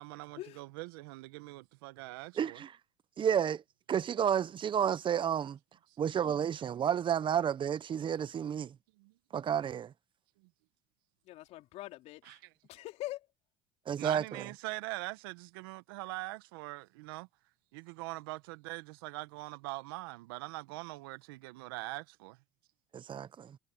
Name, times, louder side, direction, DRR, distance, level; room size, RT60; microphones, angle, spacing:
voice 1, 0.0-2.6 9.0-9.1 12.2-12.4 14.0-17.3 17.7-22.4, right 22 dB, 80° right, 1.5 m, -42 dB
voice 2, 2.3-2.8 3.2-3.6 3.9-5.6 6.0-8.8 9.3-9.9 13.8-14.5 22.9-23.6, right 8 dB, 45° right, 1.3 m, -31 dB
voice 3, 11.2-13.3, left 16 dB, 65° left, 4.0 m, -44 dB
hypercardioid pair, 70°, 12 cm